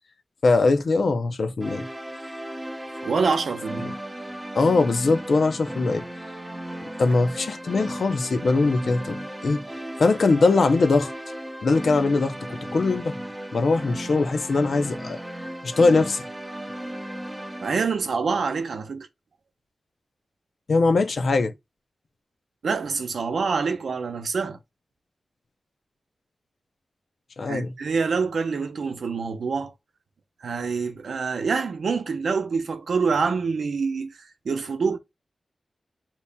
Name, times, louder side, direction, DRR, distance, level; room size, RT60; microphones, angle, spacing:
voice 1, 0.4-1.9 3.8-3.9 4.5-6.0 7.0-9.7 10.0-11.1 11.6-13.1 13.5-15.2 15.6-16.3 20.7-21.5 27.4-27.7, left 3 dB, 65° left, 0.6 m, -21 dB
sound 1, 1.6-17.7, right 1 dB, 10° right, 0.7 m, -35 dB
voice 2, 3.0-3.9 17.6-19.1 22.6-24.6 27.5-29.7 30.4-34.2 34.4-35.0, right 5 dB, 85° right, 0.7 m, -26 dB
8.3 x 2.9 x 2.2 m
wide cardioid pair, 120°, 0 cm